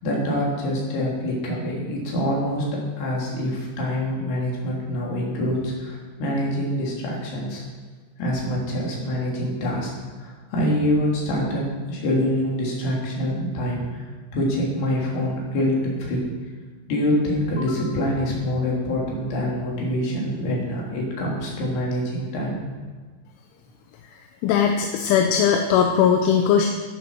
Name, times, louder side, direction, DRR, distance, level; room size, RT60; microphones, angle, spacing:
voice 1, 0.0-2.6 3.0-7.6 8.2-9.9 10.2-14.1 14.3-16.2 16.9-22.6, equal, 60° left, -3 dB, 5.0 m, -25 dB
voice 2, 24.4-26.7, left 8 dB, 80° left, 4 dB, 3.2 m, -19 dB
14.5 x 8.4 x 6.5 m, 1.5 s
omnidirectional pair, 5.6 m